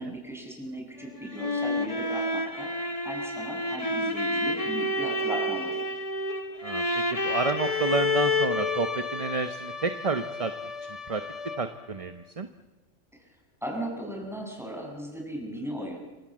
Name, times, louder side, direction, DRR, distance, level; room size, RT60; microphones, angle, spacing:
voice 1, 0.0-2.7 3.0-5.8 13.1-13.3 13.6-16.0, equal, ahead, 0 dB, 7.3 m, -37 dB
sound 1, 1.0-11.9, left 2 dB, 30° left, 1.2 m, -30 dB
voice 2, 6.6-10.5 11.1-11.2 11.6-12.5, right 4 dB, 30° right, 9 dB, 1.0 m, -30 dB
27.5 x 25.5 x 7.6 m, 1.1 s
omnidirectional pair, 1.3 m